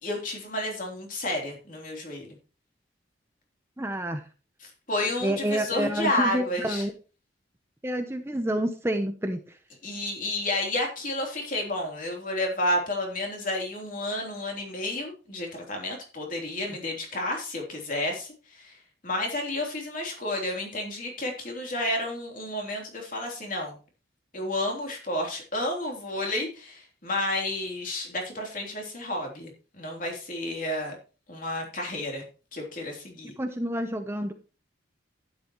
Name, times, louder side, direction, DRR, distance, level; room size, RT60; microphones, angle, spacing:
voice 1, 0.0-2.3 4.9-6.8 9.8-18.8 19.0-23.8 24.3-29.5 29.8-31.0 31.3-32.2 32.5-33.3, left 1 dB, 45° left, 1 dB, 3.3 m, -31 dB
voice 2, 3.8-4.2 5.2-6.9 7.8-9.6 33.2-34.3, right 1 dB, 15° right, 7 dB, 0.7 m, -29 dB
11.5 x 9.8 x 3.0 m, 0.34 s
head